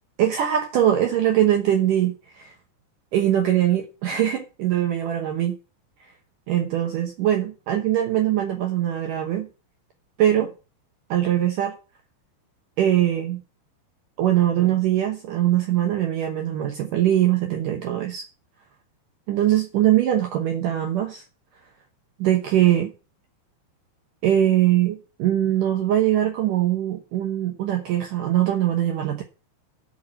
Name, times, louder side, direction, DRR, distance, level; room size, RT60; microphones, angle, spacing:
voice 1, 0.2-2.5 3.1-5.6 6.5-9.5 10.2-10.5 11.1-11.8 12.8-13.4 14.2-18.2 19.3-21.2 22.2-22.9 24.2-29.2, right 11 dB, 70° right, 4 dB, 2.1 m, -22 dB
10.5 x 5.8 x 7.6 m, 0.33 s
omnidirectional pair, 5.1 m